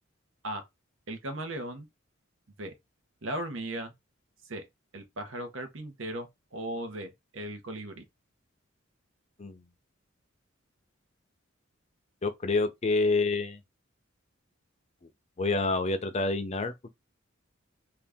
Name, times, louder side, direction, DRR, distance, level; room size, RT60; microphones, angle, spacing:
voice 1, 1.1-1.9 2.6-2.7 3.2-3.9 4.5-4.6 4.9-8.0, right 1 dB, 70° right, 0.9 m, -37 dB
voice 2, 12.2-13.6 15.4-16.9, left 3 dB, 35° left, 0.5 m, -28 dB
2.8 x 2.4 x 3.4 m
head